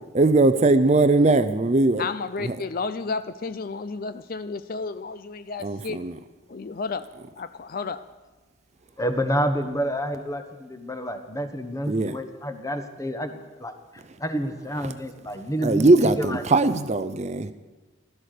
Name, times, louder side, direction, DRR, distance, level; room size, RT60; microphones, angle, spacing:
voice 1, 0.1-2.0 2.4-2.6 5.6-6.1 11.9-12.2 15.6-17.5, right 2 dB, 35° right, 12 dB, 0.6 m, -20 dB
voice 2, 2.0-6.0 6.5-7.1 7.4-8.0, left 4 dB, 45° left, 13 dB, 0.4 m, -32 dB
voice 3, 9.0-13.8 14.2-16.4, equal, 15° left, 7 dB, 1.1 m, -29 dB
15.5 x 12.5 x 6.7 m, 1.3 s
head